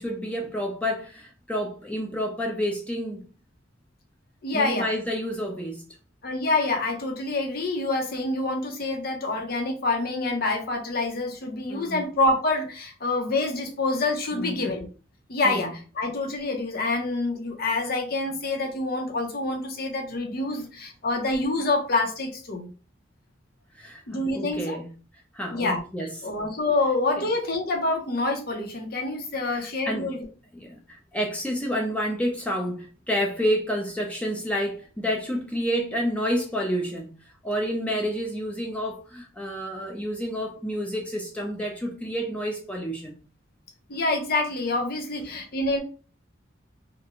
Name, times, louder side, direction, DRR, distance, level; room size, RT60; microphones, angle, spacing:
voice 1, 0.0-3.3 4.5-5.8 11.7-12.0 14.3-14.6 15.4-15.7 23.7-24.9 25.3-26.1 27.2-27.3 29.5-30.1 30.5-43.2, equal, 5° left, 0.4 m, -29 dB
voice 2, 4.4-4.9 6.2-14.9 15.3-22.7 24.1-24.8 25.5-30.2 43.9-45.8, left 2 dB, 50° left, 0.7 m, -27 dB
2.4 x 2.1 x 2.9 m
head